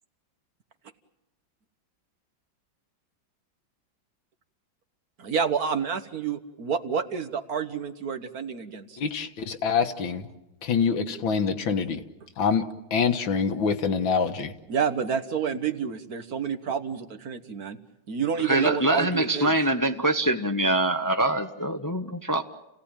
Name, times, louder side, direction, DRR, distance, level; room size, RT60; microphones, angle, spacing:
voice 1, 5.2-9.0 14.7-17.8 18.1-19.5, right 7 dB, 55° right, 9 dB, 1.5 m, -29 dB
voice 2, 9.0-10.2 10.6-12.0 12.4-12.6 12.9-14.5, left 6 dB, 85° left, 6 dB, 2.2 m, -25 dB
voice 3, 18.4-22.4, right 1 dB, 25° left, 6 dB, 0.4 m, -24 dB
29.5 x 17.0 x 8.9 m, 0.95 s
omnidirectional pair, 2.1 m